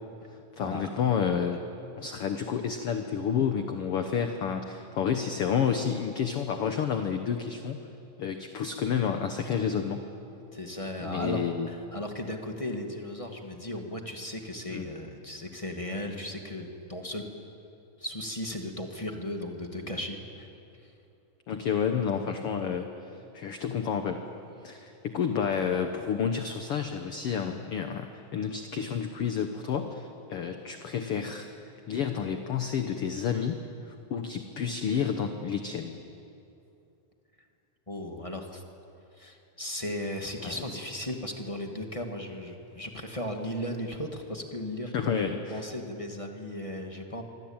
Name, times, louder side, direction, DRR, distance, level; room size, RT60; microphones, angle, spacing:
voice 1, 0.6-1.6 2.0-7.9 8.2-10.0 11.0-11.7 14.7-14.9 21.5-22.9 23.3-24.2 24.6-31.5 31.9-36.0 40.4-40.6 44.9-45.6, left 7 dB, 60° left, 6 dB, 1.6 m, -30 dB
voice 2, 10.5-17.2 18.0-20.5 20.8-20.9 37.9-38.6 39.2-45.2 45.5-47.2, left 1 dB, 15° left, 3 dB, 1.3 m, -36 dB
25.0 x 24.5 x 8.9 m, 2.7 s
omnidirectional pair, 3.9 m